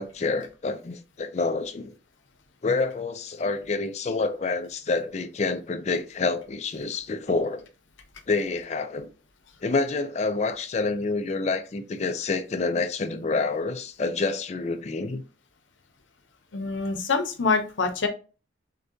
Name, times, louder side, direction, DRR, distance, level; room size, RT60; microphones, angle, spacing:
voice 1, 0.0-1.9 2.6-7.7 8.3-9.1 9.6-15.2, left 3 dB, 35° left, 0.4 m, -28 dB
voice 2, 16.5-18.1, left 4 dB, 80° left, 0.7 m, -25 dB
6.3 x 2.2 x 2.6 m
head